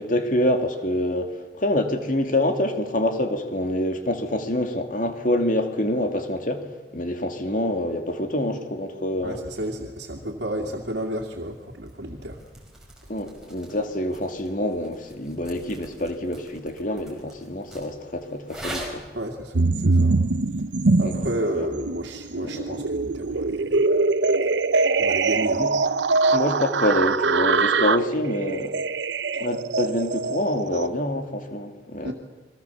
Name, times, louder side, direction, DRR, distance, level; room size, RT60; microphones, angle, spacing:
voice 1, 0.0-9.4 13.1-19.0 21.0-21.1 21.4-21.7 22.4-22.9 25.6-25.7 26.3-28.8 29.4-32.1, left 1 dB, 45° left, 2.4 m, -26 dB
voice 2, 9.2-12.4 19.1-20.2 21.0-23.8 25.0-25.7 32.0-32.1, right 1 dB, 70° right, 2.5 m, -31 dB
sound 1, 11.2-19.3, right 1 dB, 5° right, 5.5 m, -43 dB
sound 2, 19.5-21.4 21.8-30.9, right 3 dB, 85° right, 0.8 m, -23 dB
29.5 x 22.5 x 7.2 m
head